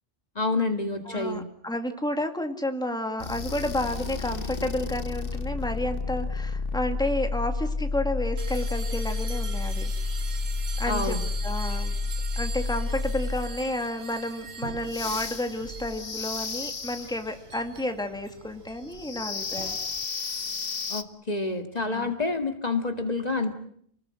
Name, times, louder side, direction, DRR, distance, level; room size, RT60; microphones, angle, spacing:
voice 1, 0.4-1.5 10.9-11.2 20.9-23.6, left 3 dB, 40° left, 6 dB, 2.2 m, -28 dB
voice 2, 1.1-9.9 10.8-11.2 11.4-11.9 12.4-19.8 21.9-22.1, left 1 dB, 5° left, 5 dB, 2.3 m, -31 dB
sound 1, 3.2-13.6 14.8-17.3 18.9-21.0, left 4 dB, 60° left, 1.4 m, -31 dB
sound 2, 8.4-20.0, right 5 dB, 80° right, 1.7 m, -42 dB
29.5 x 20.0 x 7.8 m, 0.65 s
omnidirectional pair, 1.1 m